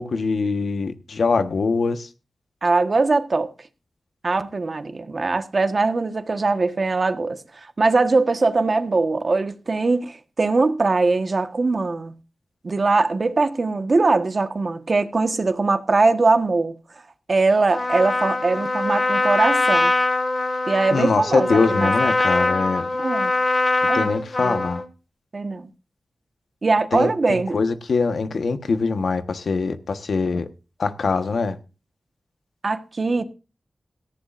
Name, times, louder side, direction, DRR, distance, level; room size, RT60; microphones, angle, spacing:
voice 1, 0.0-2.1 20.9-22.9 23.9-24.8 26.9-30.5 30.8-31.5, left 4 dB, 80° left, 1.3 m, -23 dB
voice 2, 2.6-3.5 4.2-7.4 7.8-12.1 12.6-16.7 17.3-19.9 20.7-21.9 22.9-23.3 23.9-24.1 24.4-24.6 25.3-25.7 26.6-27.6 32.6-33.3, right 3 dB, 55° right, 1.4 m, -21 dB
Trumpet, 17.7-24.9, left 2 dB, 40° left, 2.0 m, -22 dB
17.5 x 14.5 x 2.6 m
cardioid pair, 55°, 0 cm